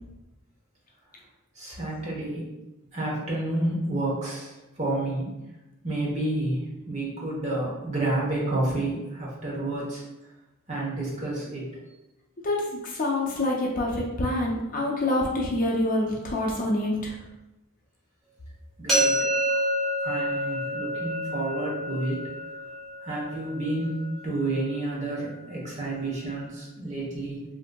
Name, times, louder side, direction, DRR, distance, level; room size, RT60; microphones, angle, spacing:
voice 1, 1.6-2.5 2.9-5.3 5.8-6.6 6.9-10.0 10.7-11.7 18.8-19.6 20.0-22.3 23.0-27.4, right 2 dB, 35° right, -5 dB, 0.9 m, -30 dB
voice 2, 12.4-17.2, left 1 dB, 40° left, -2 dB, 0.5 m, -26 dB
sound 1, 18.9-24.7, right 1 dB, ahead, 1.0 m, -28 dB
3.7 x 2.6 x 2.2 m, 0.99 s
head